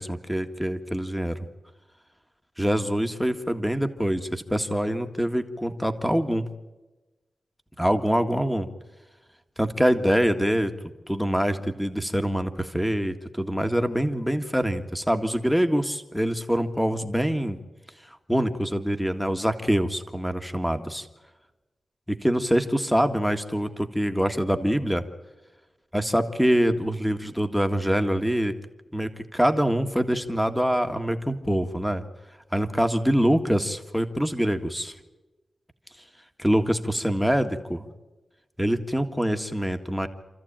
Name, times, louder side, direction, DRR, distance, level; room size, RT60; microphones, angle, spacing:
voice 1, 0.0-1.4 2.6-6.5 7.8-8.7 9.6-10.7 11.1-17.6 18.1-21.1 22.1-25.0 25.9-28.5 28.9-32.0 32.5-35.0 36.4-37.9 38.6-40.1, equal, ahead, 7 dB, 1.8 m, -25 dB
28.0 x 14.0 x 8.9 m, 1.1 s
wide cardioid pair, 80°, 0 cm